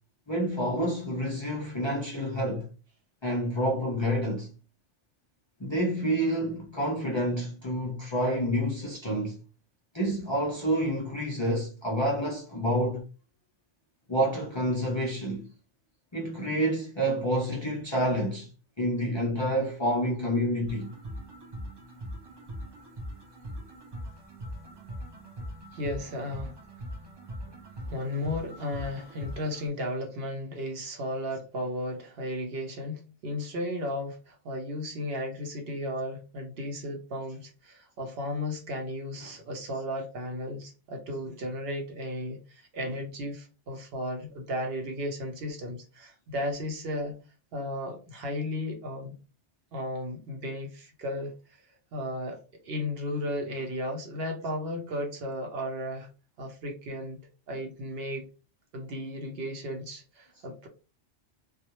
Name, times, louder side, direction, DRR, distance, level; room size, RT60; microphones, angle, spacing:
voice 1, 0.3-2.7 3.2-4.5 5.6-9.4 9.9-13.0 14.1-15.5 16.1-18.5 18.8-20.9, equal, 40° left, 0.4 m, -28 dB
sound 1, 20.7-29.7, equal, 35° right, 0.4 m, -41 dB
voice 2, 25.7-26.5 27.9-47.1 47.5-49.2 49.7-51.3 51.9-56.1 56.4-57.2 57.5-58.3 58.7-60.7, left 1 dB, 65° right, 0.8 m, -34 dB
2.3 x 2.0 x 2.8 m
omnidirectional pair, 1.2 m